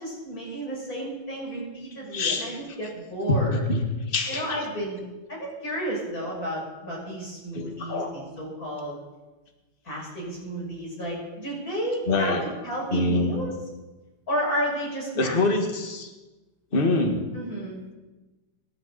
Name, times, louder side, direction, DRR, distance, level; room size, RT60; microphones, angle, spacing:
voice 1, 0.0-3.6 4.3-5.0 5.3-9.0 9.8-12.4 12.6-13.5 14.3-15.4 17.3-17.8, equal, 40° left, -3 dB, 7.2 m, -32 dB
voice 2, 2.1-2.5 3.3-3.4 3.7-3.8 4.1-4.6 7.5-8.1 12.1-12.4 12.9-13.4 15.2-16.1 16.7-17.2, left 2 dB, 25° left, 2 dB, 2.0 m, -25 dB
25.0 x 12.0 x 4.3 m, 1.2 s
omnidirectional pair, 2.3 m